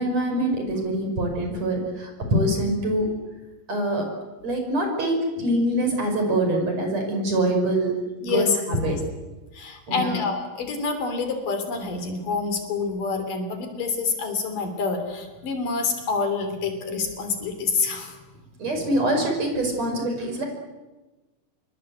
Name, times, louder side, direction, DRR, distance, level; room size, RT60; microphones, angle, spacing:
voice 1, 0.0-3.1 3.7-4.1 4.4-7.9 8.2-9.0 9.9-10.2 18.6-20.5, right 1 dB, 50° right, 3 dB, 6.7 m, -24 dB
voice 2, 8.2-8.6 8.9-9.0 9.5-18.1, left 4 dB, 70° left, 7 dB, 4.8 m, -27 dB
27.0 x 22.5 x 8.2 m, 1.2 s
omnidirectional pair, 3.9 m